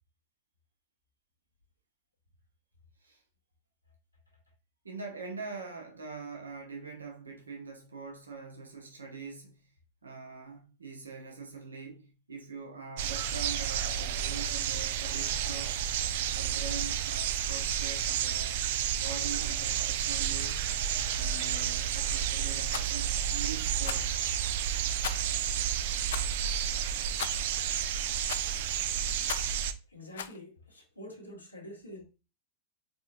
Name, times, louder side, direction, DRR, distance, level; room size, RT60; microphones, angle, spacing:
voice 1, 4.8-9.7 10.0-15.8 16.3-18.6 19.0-20.7 21.1-24.1, right 4 dB, 75° right, 1.2 m, -43 dB
sound 1, 13.0-29.7, right 9 dB, 55° right, 0.4 m, -31 dB
Rattle, 22.7-22.9 23.8-24.1 25.0-25.4 26.1-26.3 27.2-27.5 28.3-28.6 29.3-29.6 30.2-30.4, left 9 dB, 60° left, 0.4 m, -38 dB
voice 2, 29.9-32.0, equal, 90° left, 1.4 m, -46 dB
4.3 x 4.3 x 2.5 m
figure-of-eight pair, 90°, 0 cm